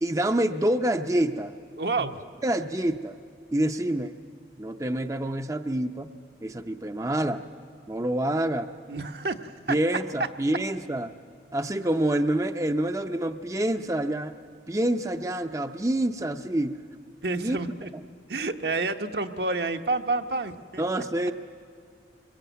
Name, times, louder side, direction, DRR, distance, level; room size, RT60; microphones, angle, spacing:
voice 1, 0.0-1.5 2.0-2.1 2.4-3.2 3.5-4.1 4.6-6.1 6.4-7.4 7.9-8.7 9.7-11.1 11.5-14.3 14.7-16.7 17.4-17.6 20.8-21.3, right 1 dB, 20° right, 7 dB, 0.6 m, -27 dB
voice 2, 1.8-2.2 8.9-9.8 17.2-17.9 18.3-20.8, right 3 dB, 70° right, 6 dB, 1.2 m, -29 dB
25.0 x 22.5 x 9.2 m, 2.4 s
head